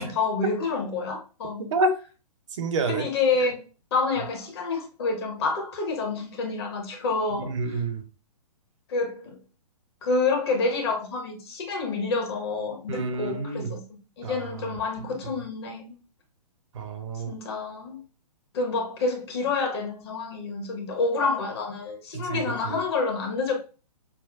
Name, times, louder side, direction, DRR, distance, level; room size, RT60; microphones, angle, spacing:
voice 1, 0.0-1.8 2.9-3.6 3.9-7.8 8.9-9.4 10.0-16.0 17.3-18.0 18.5-23.6, left 3 dB, 40° left, 1.0 m, -28 dB
voice 2, 2.6-3.0 7.3-8.0 12.9-13.8 14.2-14.4 15.0-15.1 16.7-17.3 22.1-22.8, right 3 dB, 50° right, 0.7 m, -28 dB
5.6 x 2.2 x 2.3 m
figure-of-eight pair, 125°, 21 cm